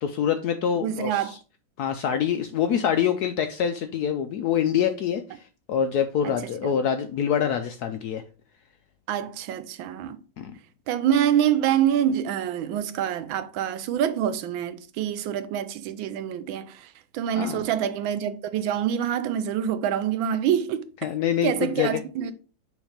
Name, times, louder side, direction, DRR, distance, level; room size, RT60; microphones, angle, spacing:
voice 1, 0.0-1.4 1.8-5.4 5.7-8.2 10.4-10.5 17.4-17.7 21.0-22.0, left 8 dB, 75° left, 0.9 m, -25 dB
voice 2, 0.8-1.3 6.2-6.4 6.6-6.8 9.1-10.2 10.9-16.9 17.1-20.9 21.4-22.3, right 9 dB, 80° right, 1.4 m, -26 dB
6.4 x 3.2 x 4.9 m
omnidirectional pair, 2.1 m